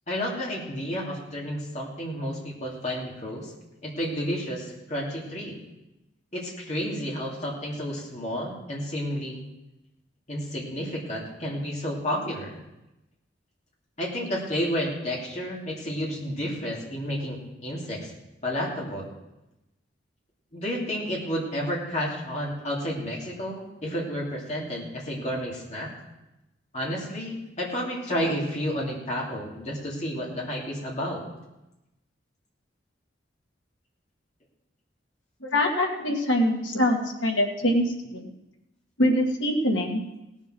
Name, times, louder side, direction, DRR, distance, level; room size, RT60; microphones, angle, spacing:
voice 1, 0.1-3.5 3.8-5.6 6.3-9.4 10.3-12.5 14.0-18.1 18.4-19.1 20.5-25.9 26.7-31.2, equal, 35° left, -3 dB, 2.7 m, -31 dB
voice 2, 35.4-37.8 38.1-38.2 39.0-40.0, left 1 dB, 85° left, 1 dB, 2.1 m, -24 dB
18.0 x 7.3 x 6.2 m, 0.96 s
head